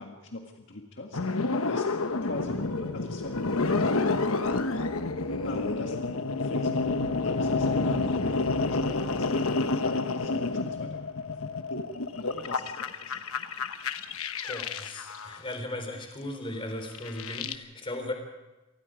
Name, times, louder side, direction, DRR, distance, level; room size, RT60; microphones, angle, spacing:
voice 1, 0.0-4.9 5.4-6.0 6.4-6.9 7.2-11.4 11.7-13.2, left 2 dB, 60° left, 2 dB, 1.8 m, -40 dB
sound 1, 1.1-15.4 16.9-17.6, left 3 dB, 80° left, 1.1 m, -29 dB
sound 2, 2.2-3.7 4.1-4.2 4.4-6.0 6.6-9.7, equal, 5° left, 1.9 m, -48 dB
voice 2, 14.4-18.1, left 1 dB, 25° left, 4 dB, 3.9 m, -37 dB
27.5 x 19.5 x 5.0 m, 1.1 s
head